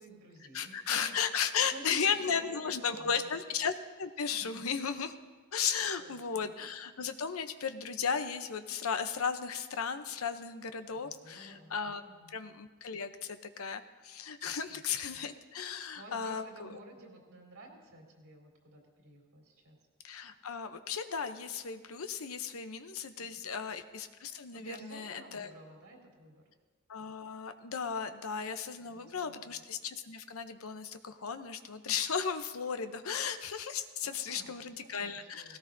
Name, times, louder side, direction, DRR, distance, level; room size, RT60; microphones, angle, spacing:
voice 1, 0.0-1.2 1.6-3.3 4.3-4.7 6.0-6.6 11.0-11.8 12.0-12.4 14.7-15.3 15.9-19.8 23.2-23.5 24.5-26.5 28.8-29.6 34.0-35.6, right 1 dB, 80° right, -2 dB, 3.8 m, -53 dB
voice 2, 0.5-3.7 4.0-5.1 5.5-12.0 12.3-16.8 20.0-25.5 26.9-35.6, left 6 dB, 80° left, 9 dB, 0.7 m, -35 dB
18.0 x 17.0 x 2.7 m, 1.4 s
head